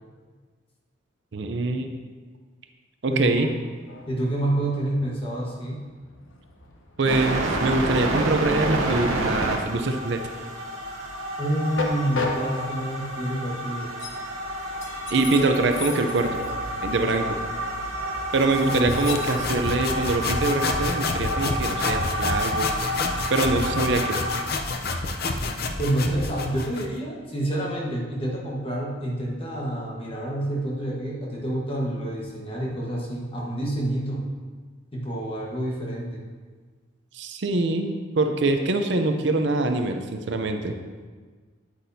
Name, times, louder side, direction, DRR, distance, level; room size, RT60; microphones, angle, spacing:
voice 1, 1.3-1.9 3.0-3.5 7.0-10.2 15.1-16.4 16.8-17.4 18.3-22.7 23.3-24.2 37.1-40.7, right 2 dB, 60° right, 6 dB, 0.5 m, -24 dB
voice 2, 3.1-3.6 4.1-5.8 11.4-13.9 18.6-19.2 25.8-34.2 34.9-36.2, right 1 dB, 25° left, -2 dB, 1.3 m, -28 dB
Train, 3.7-20.5, left 3 dB, 75° left, 0.9 m, -38 dB
sound 1, 7.1-24.5, right 1 dB, 85° right, 1.0 m, -29 dB
sound 2, 18.3-26.9, left 3 dB, 50° left, 0.5 m, -29 dB
9.1 x 8.2 x 2.7 m, 1.5 s
head